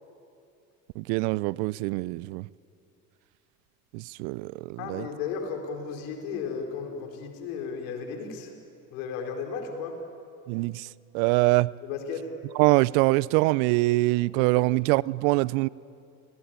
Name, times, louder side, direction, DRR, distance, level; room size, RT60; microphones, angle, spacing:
voice 1, 1.0-2.5 3.9-5.0 10.5-10.9 11.1-11.7 12.6-15.7, right 22 dB, 70° right, 0.6 m, -24 dB
voice 2, 4.8-8.5 8.9-10.0 11.8-12.3 14.5-14.6, left 6 dB, 75° left, 4.5 m, -34 dB
30.0 x 20.0 x 8.9 m
hypercardioid pair, 75°, 43 cm